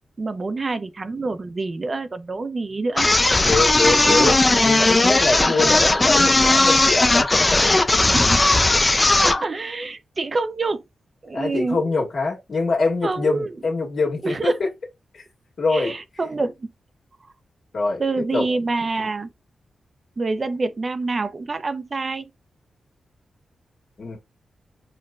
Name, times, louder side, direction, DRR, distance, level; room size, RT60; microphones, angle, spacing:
voice 1, 0.2-3.1 4.0-4.4 5.4-5.8 8.1-10.8 11.2-12.1 13.0-13.5 14.2-14.6 15.7-16.7 18.0-19.3 20.2-22.3, right 3 dB, 40° right, 0.4 m, -27 dB
sound 1, 3.0-9.4, left 2 dB, 25° left, 0.4 m, -17 dB
voice 2, 3.4-4.3 4.6-7.9 11.3-14.5 15.1-15.2 15.6-15.9 17.7-18.0 18.3-18.5 24.0-24.2, left 3 dB, 65° left, 1.5 m, -24 dB
4.4 x 2.1 x 2.4 m
cardioid pair, 80°, 0 cm